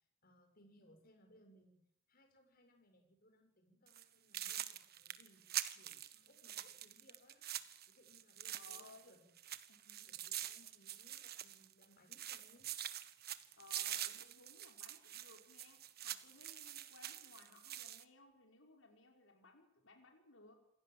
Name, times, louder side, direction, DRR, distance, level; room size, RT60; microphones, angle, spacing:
voice 1, 0.2-1.8 2.1-5.4 5.7-7.4 7.9-9.3 10.1-12.7, equal, 50° left, 5 dB, 6.6 m, -67 dB
sound 1, 3.9-4.0 4.3-9.1 9.4-11.9 12.1-18.0, right 12 dB, 55° right, 1.5 m, -45 dB
voice 2, 8.5-9.2 9.7-10.2 13.6-20.6, left 2 dB, 90° left, 3 dB, 5.5 m, -62 dB
27.5 x 17.0 x 7.7 m, 0.74 s
head